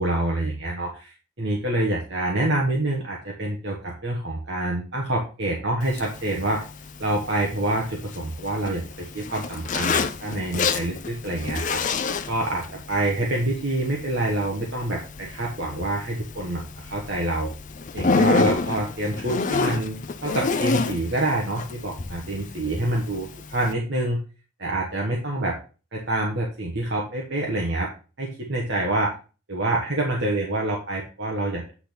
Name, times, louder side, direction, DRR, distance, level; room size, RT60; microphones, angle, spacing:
voice 1, 0.0-6.6 7.0-11.8 12.3-17.5 17.9-24.2 24.6-25.6 25.9-27.9 28.2-29.1 29.5-31.7, right 1 dB, 50° right, -1 dB, 1.4 m, -27 dB
Zipper (clothing), 5.8-23.7, left 4 dB, 35° left, 0.5 m, -29 dB
8.5 x 4.1 x 5.3 m, 0.34 s
head